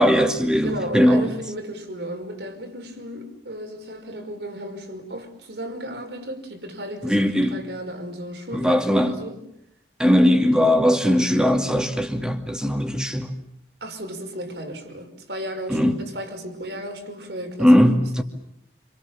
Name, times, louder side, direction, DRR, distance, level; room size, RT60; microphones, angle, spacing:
voice 1, 0.0-1.3 7.0-7.6 8.5-9.2 10.0-13.3 15.7-16.0 17.6-18.2, equal, 5° right, 2.4 m, -19 dB
voice 2, 0.6-9.4 13.8-17.7, equal, 70° right, 5.5 m, -34 dB
28.5 x 27.5 x 7.2 m
head